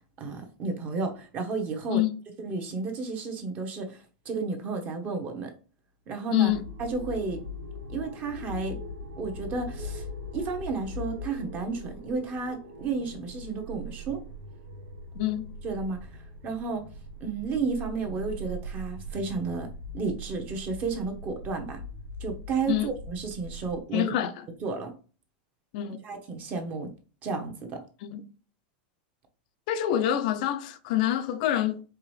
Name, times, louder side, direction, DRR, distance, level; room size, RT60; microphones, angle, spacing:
voice 1, 0.0-2.0 2.4-5.5 6.1-6.5 6.8-7.4 7.9-8.8 9.2-10.1 10.3-14.2 15.6-16.0 16.4-16.8 17.2-19.7 19.9-21.8 22.2-24.1 24.6-24.9 26.0-26.9 27.2-27.8, right 4 dB, 30° right, 1.0 m, -32 dB
voice 2, 6.3-6.7 15.1-15.5 22.7-22.9 23.9-24.4 25.7-26.1 28.1-28.3 29.7-31.8, left 12 dB, 55° left, 0.5 m, -26 dB
sound 1, 6.5-23.8, equal, 80° right, 1.0 m, -41 dB
4.7 x 3.5 x 3.2 m
supercardioid pair, 160°, 5 cm